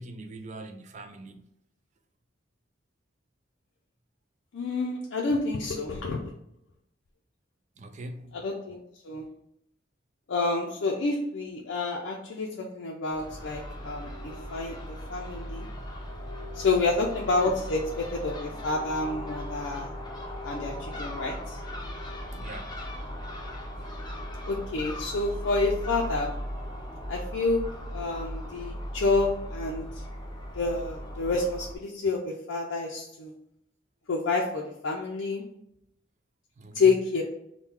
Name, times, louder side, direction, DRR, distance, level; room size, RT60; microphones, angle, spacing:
voice 1, 0.0-1.5 7.8-8.4 20.6-20.8 22.3-22.8 23.8-23.9 36.6-37.0, right 2 dB, 40° right, 0.4 m, -43 dB
voice 2, 4.5-6.2 8.3-8.8 9.0-9.3 10.3-15.7 16.5-19.9 20.4-21.6 24.5-26.3 27.1-30.0 30.5-33.3 34.1-35.4 36.7-37.2, left 3 dB, 80° left, 0.5 m, -29 dB
Crow / Gull seagull, 13.1-31.7, equal, 20° left, 0.6 m, -38 dB
3.7 x 2.2 x 4.3 m
head